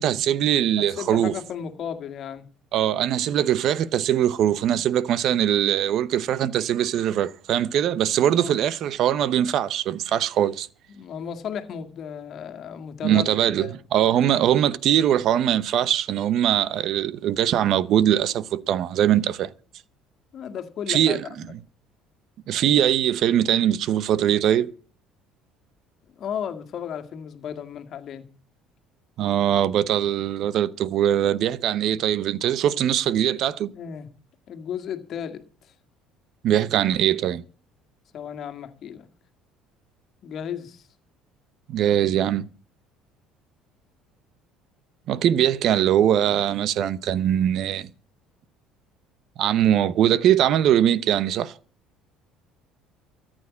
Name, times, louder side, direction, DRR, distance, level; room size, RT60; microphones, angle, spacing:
voice 1, 0.0-1.3 2.7-10.7 13.0-19.5 20.9-21.2 22.5-24.7 29.2-33.7 36.4-37.4 41.7-42.5 45.1-47.9 49.4-51.6, right 10 dB, 50° right, 0.8 m, -21 dB
voice 2, 0.8-2.4 8.0-8.6 10.9-13.8 20.3-21.5 26.2-28.3 33.7-34.1 34.5-35.4 38.1-39.1 40.2-40.8, left 8 dB, 45° left, 2.0 m, -34 dB
14.0 x 9.0 x 8.4 m
cardioid pair, 145°, 0 cm